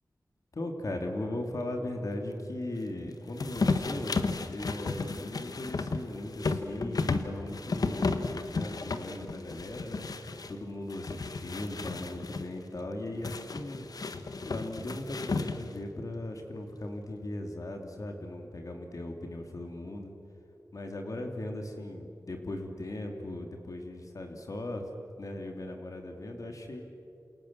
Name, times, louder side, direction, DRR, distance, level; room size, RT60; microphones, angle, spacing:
voice 1, 0.5-4.2 4.5-20.1 20.7-24.9 25.2-26.8, left 1 dB, 60° left, 3 dB, 2.9 m, -38 dB
sound 1, 3.4-10.5 10.9-12.5 13.2-15.8, left 3 dB, 75° left, 1.5 m, -33 dB
28.0 x 28.0 x 7.5 m, 2.8 s
wide cardioid pair, 85°, 6 cm